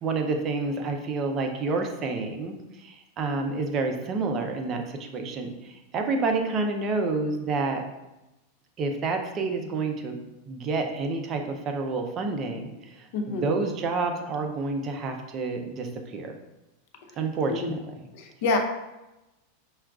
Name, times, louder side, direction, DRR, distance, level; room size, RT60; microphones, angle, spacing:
voice 1, 0.0-7.8 8.8-16.4 17.2-17.9, right 3 dB, 30° right, 4 dB, 0.5 m, -29 dB
voice 2, 13.1-13.6 17.1-17.2 17.5-17.8 18.1-18.6, left 3 dB, 60° left, 4 dB, 0.6 m, -28 dB
5.6 x 2.3 x 2.4 m, 0.98 s
supercardioid pair, 135°, 0 cm